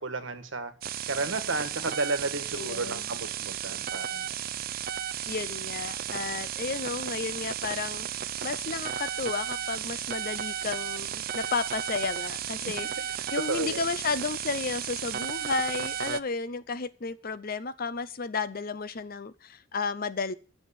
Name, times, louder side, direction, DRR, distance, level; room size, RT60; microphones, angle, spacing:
voice 1, 0.0-0.7 1.1-4.3 12.6-12.7 13.5-13.8, right 3 dB, 75° right, 9 dB, 1.6 m, -32 dB
sound 1, 0.8-16.2, right 10 dB, 50° right, 0.5 m, -34 dB
voice 2, 2.5-3.1 5.3-8.1 8.4-20.3, left 4 dB, 50° left, 15 dB, 0.7 m, -33 dB
9.4 x 6.7 x 8.4 m, 0.38 s
head